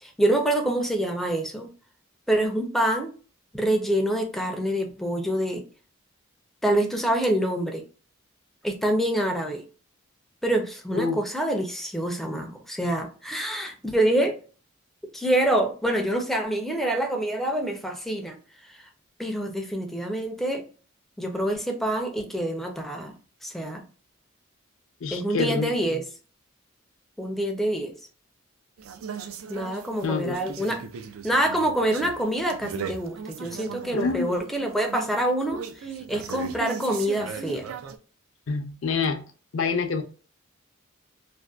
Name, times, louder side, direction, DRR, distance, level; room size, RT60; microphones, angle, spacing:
voice 1, 0.0-1.7 2.3-3.1 3.5-5.6 6.6-7.8 8.6-9.6 10.4-14.4 15.1-18.4 18.7-18.8 19.2-20.6 21.2-23.1 23.4-23.8 25.1-26.0 27.2-27.9 29.5-30.8 31.2-37.7, right 1 dB, ahead, 0.4 m, -26 dB
voice 2, 25.0-26.0 30.0-30.5 33.9-34.4 38.5-39.2 39.5-40.0, left 4 dB, 70° left, 0.5 m, -27 dB
sound 1, 28.8-38.0, right 7 dB, 85° right, 0.4 m, -38 dB
2.6 x 2.1 x 2.2 m
head